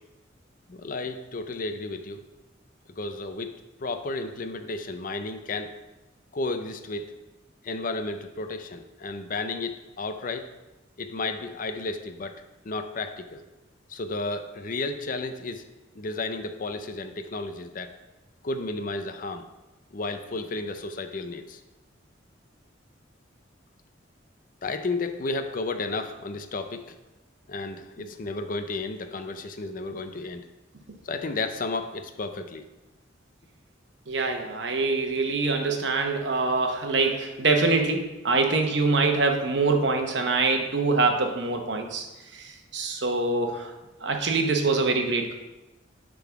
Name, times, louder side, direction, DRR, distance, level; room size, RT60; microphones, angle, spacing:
voice 1, 0.7-2.2 3.0-3.5 3.8-5.8 6.3-7.2 7.6-10.5 11.0-12.4 12.6-13.4 13.9-15.6 15.9-17.9 18.4-19.5 19.9-21.6 24.6-27.0 27.5-30.5 31.0-32.6, left 3 dB, 45° left, 8 dB, 0.5 m, -32 dB
voice 2, 34.1-42.0 42.3-43.7 44.0-45.3, right 3 dB, 65° right, 3 dB, 1.0 m, -24 dB
10.5 x 3.8 x 4.6 m, 1.0 s
head